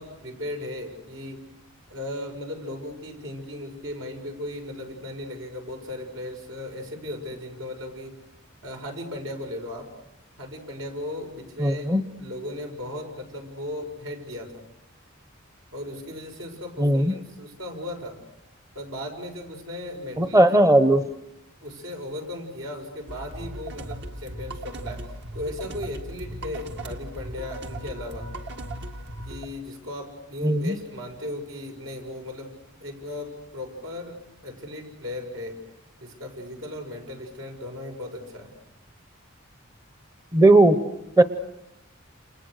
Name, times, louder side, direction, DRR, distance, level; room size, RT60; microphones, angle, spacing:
voice 1, 0.0-1.4 1.9-8.2 8.6-9.9 10.4-11.9 12.2-14.6 15.7-18.2 18.7-20.5 21.6-28.3 29.2-32.5 32.8-35.6 36.0-38.5, left 1 dB, 80° right, 2 dB, 6.5 m, -36 dB
voice 2, 11.6-12.0 16.8-17.1 20.2-21.0 30.4-30.8 40.3-40.8 41.2-41.3, right 1 dB, 15° right, 11 dB, 0.9 m, -17 dB
sound 1, 23.1-29.5, right 1 dB, 60° right, 1.9 m, -37 dB
29.0 x 28.0 x 6.6 m, 0.87 s
head